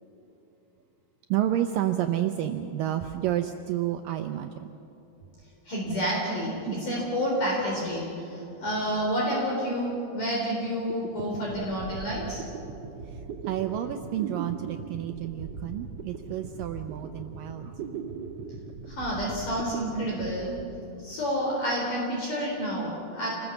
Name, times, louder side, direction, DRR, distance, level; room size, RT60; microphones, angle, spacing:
voice 1, 1.3-4.7 6.7-6.9 13.5-17.7, right 12 dB, 85° right, 6 dB, 1.9 m, -30 dB
voice 2, 5.7-12.5 18.9-20.6 21.0-23.3, equal, 50° left, -2 dB, 5.1 m, -29 dB
sound 1, 10.6-10.7 10.9-21.4, right 5 dB, 70° right, 1.6 m, -39 dB
28.5 x 20.5 x 7.2 m, 2.9 s
omnidirectional pair, 4.9 m